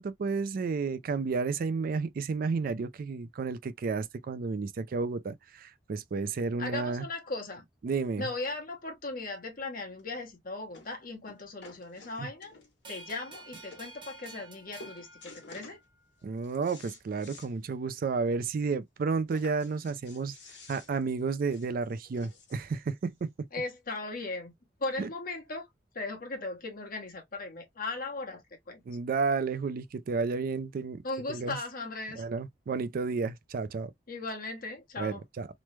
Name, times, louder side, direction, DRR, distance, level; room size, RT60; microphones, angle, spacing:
voice 1, 0.0-7.1 7.8-8.3 12.2-12.3 16.2-20.4 20.7-23.3 25.0-25.1 28.9-31.0 31.3-31.6 32.2-33.9 35.0-35.5, right 4 dB, 50° right, 0.3 m, -32 dB
voice 2, 6.6-7.6 8.2-12.5 12.9-15.8 23.5-24.5 24.8-25.7 25.9-28.8 31.0-32.2 34.1-35.2, left 3 dB, 50° left, 1.1 m, -37 dB
sound 1, 10.0-10.1 10.7-11.0 11.3-12.9 13.4-13.5 13.7-13.9 14.2-14.5 14.8-15.8 16.2-17.5 17.9-18.0 18.3-18.4 19.3-22.8 23.6-23.7, left 3 dB, 80° left, 1.2 m, -52 dB
sound 2, 12.8-16.1, right 2 dB, 30° right, 0.8 m, -50 dB
3.1 x 2.1 x 3.2 m
head